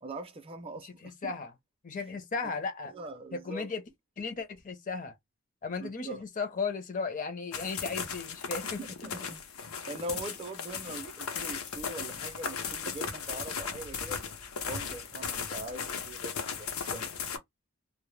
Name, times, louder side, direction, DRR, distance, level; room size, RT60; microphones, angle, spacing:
voice 1, 0.0-0.9 1.2-1.3 2.9-3.7 5.8-6.2 8.6-9.4 9.8-14.2 14.7-17.1, right 2 dB, 25° right, 0.4 m, -42 dB
voice 2, 0.8-1.5 1.8-2.9 3.3-3.8 4.2-5.2 5.6-8.8, left 4 dB, 40° left, 0.5 m, -35 dB
sound 1, 7.5-17.4, left 6 dB, 85° left, 0.6 m, -37 dB
2.0 x 2.0 x 3.0 m
head